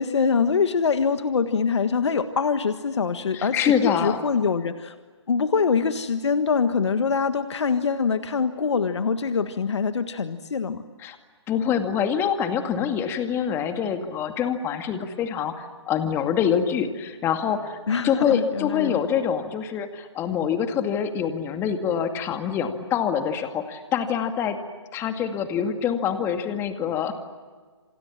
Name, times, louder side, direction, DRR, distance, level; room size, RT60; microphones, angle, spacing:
voice 1, 0.0-5.0 5.3-10.8 17.9-19.0, left 5 dB, 70° left, 9 dB, 1.5 m, -24 dB
voice 2, 3.3-4.2 11.0-11.2 11.5-17.8 18.0-24.6 24.9-27.1, left 8 dB, 15° left, 7 dB, 2.2 m, -25 dB
28.0 x 27.5 x 7.5 m, 1.5 s
hypercardioid pair, 145°, 15 cm